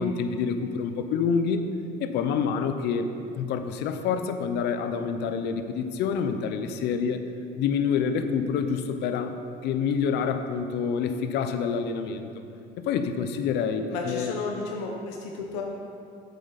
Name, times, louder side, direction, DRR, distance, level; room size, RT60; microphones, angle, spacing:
voice 1, 0.0-1.7 2.0-7.2 7.6-9.3 9.6-12.3 12.9-14.3, left 6 dB, 65° left, 8 dB, 0.7 m, -27 dB
voice 2, 13.9-15.6, left 3 dB, 85° left, 0 dB, 1.1 m, -33 dB
8.4 x 7.7 x 4.1 m, 2.5 s
cardioid pair, 120°, 19 cm